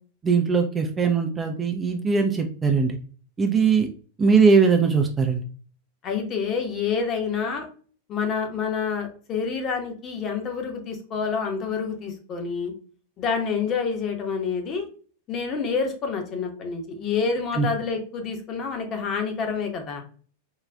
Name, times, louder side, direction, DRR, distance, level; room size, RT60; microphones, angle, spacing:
voice 1, 0.2-3.0 3.4-3.9 4.2-5.4 17.5-17.7, right 5 dB, 15° right, 3 dB, 0.4 m, -20 dB
voice 2, 6.0-7.7 8.1-12.7 13.2-14.9 15.3-20.0, left 5 dB, 30° left, 3 dB, 0.8 m, -28 dB
3.8 x 2.3 x 2.2 m, 0.41 s
figure-of-eight pair, 90°, 0 cm